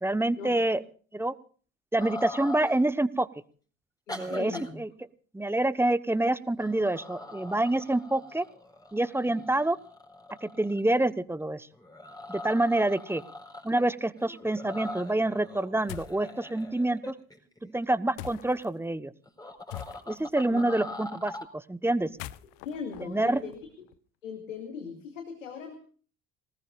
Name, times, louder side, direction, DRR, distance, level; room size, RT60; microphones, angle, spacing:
voice 1, 0.0-0.8 1.1-1.3 1.9-3.3 4.2-4.9 5.3-8.4 8.9-9.8 10.4-11.7 12.3-13.2 13.6-17.1 17.7-19.1 20.1-22.1 23.0-23.4, right 1 dB, 5° right, 14 dB, 1.1 m, -27 dB
sound 1, 2.0-2.8 4.1-4.7 6.1-6.3 6.6-11.1 11.7-13.8 14.2-17.8 19.3-21.4, left 2 dB, 10° left, 4.6 m, -42 dB
voice 2, 4.1-4.7 9.2-9.3 20.5-20.9 22.6-23.6 24.2-25.8, left 6 dB, 85° left, 5 dB, 2.3 m, -39 dB
sound 2, 15.9-16.3 18.2-18.7 19.7-20.3 22.0-24.0, left 15 dB, 65° left, 0.9 m, -43 dB
26.5 x 19.5 x 2.5 m, 0.43 s
figure-of-eight pair, 55°, 38 cm